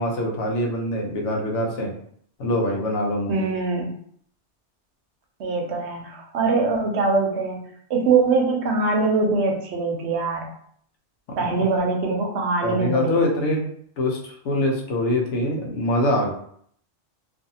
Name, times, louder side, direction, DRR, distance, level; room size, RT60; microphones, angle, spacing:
voice 1, 0.0-1.9 2.4-3.4 11.3-11.7 12.6-13.6 14.0-16.3, left 1 dB, 85° left, 0 dB, 1.0 m, -24 dB
voice 2, 3.3-3.9 5.4-10.5 11.4-13.5, right 4 dB, 75° right, 0 dB, 0.9 m, -23 dB
2.6 x 2.5 x 2.7 m, 0.63 s
omnidirectional pair, 1.2 m